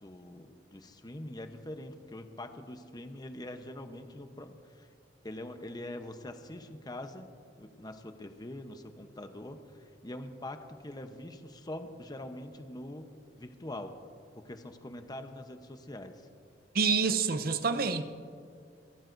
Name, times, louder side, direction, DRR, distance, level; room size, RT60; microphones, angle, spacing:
voice 1, 0.0-4.9 5.2-7.3 7.6-13.1 13.4-14.0 14.3-16.3, left 1 dB, 25° left, 7 dB, 0.9 m, -44 dB
voice 2, 16.7-18.0, right 5 dB, 55° right, 11 dB, 0.7 m, -27 dB
29.5 x 13.5 x 2.6 m, 2.3 s
head